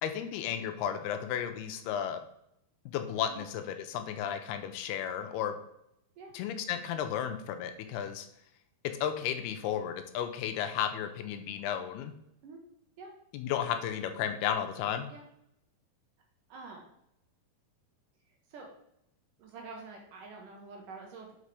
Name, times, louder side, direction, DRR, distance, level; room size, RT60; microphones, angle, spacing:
voice 1, 0.0-2.2 2.9-5.5 6.3-8.3 9.0-12.1 13.3-15.1, left 9 dB, 80° left, 7 dB, 2.6 m, -33 dB
voice 2, 16.5-16.9 18.3-18.7 19.4-21.4, right 4 dB, 70° right, 1 dB, 2.3 m, -47 dB
5.9 x 5.5 x 4.8 m, 0.78 s
omnidirectional pair, 4.6 m